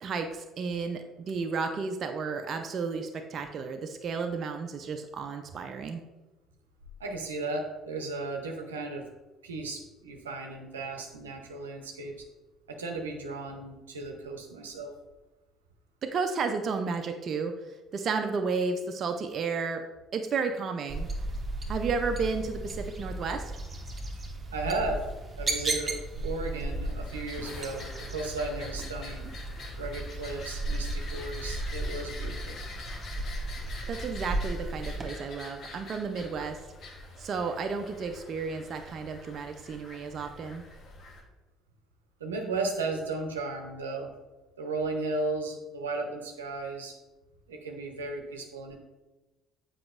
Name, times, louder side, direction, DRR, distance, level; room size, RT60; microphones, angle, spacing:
voice 1, 0.0-6.0 16.0-19.8 20.1-21.1 21.7-23.5 33.9-36.6 37.2-40.6, right 5 dB, 50° right, 5 dB, 0.5 m, -32 dB
voice 2, 7.0-9.0 9.4-12.1 12.7-14.9 24.5-25.0 25.4-29.3 29.8-32.6 42.2-44.1 44.6-46.9 47.5-48.8, right 3 dB, 90° right, 2 dB, 0.7 m, -35 dB
sound 1, 20.9-35.1, right 1 dB, 30° right, 1.0 m, -35 dB
sound 2, 26.8-41.2, left 2 dB, 55° left, 1.0 m, -45 dB
7.7 x 5.0 x 2.4 m, 1.1 s
hypercardioid pair, 55°, 0 cm